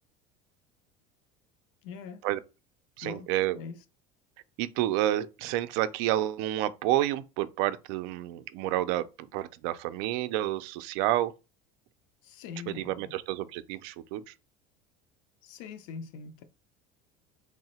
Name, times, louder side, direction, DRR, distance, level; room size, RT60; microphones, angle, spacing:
voice 1, 1.8-2.2 3.0-3.3 3.5-3.8 12.2-13.2 15.4-16.4, left 6 dB, 75° left, 0.6 m, -42 dB
voice 2, 3.0-3.6 4.6-11.3 12.7-14.2, right 14 dB, 70° right, 0.4 m, -29 dB
2.8 x 2.0 x 4.1 m
cardioid pair, 155°, 17 cm